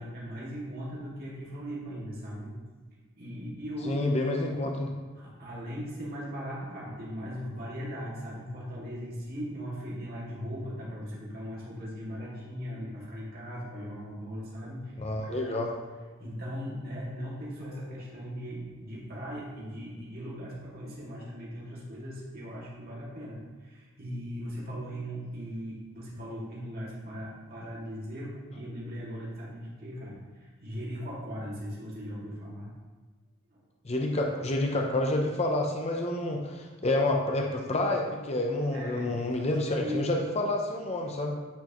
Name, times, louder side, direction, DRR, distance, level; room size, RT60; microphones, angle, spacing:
voice 1, 0.0-2.5 3.2-4.3 5.1-15.7 16.2-32.7 33.5-33.6 38.7-40.1, equal, 45° right, -6 dB, 2.1 m, -39 dB
voice 2, 3.8-4.9 15.0-15.7 33.8-41.4, left 2 dB, 30° left, 1 dB, 0.6 m, -28 dB
9.2 x 4.7 x 3.0 m, 1.4 s
head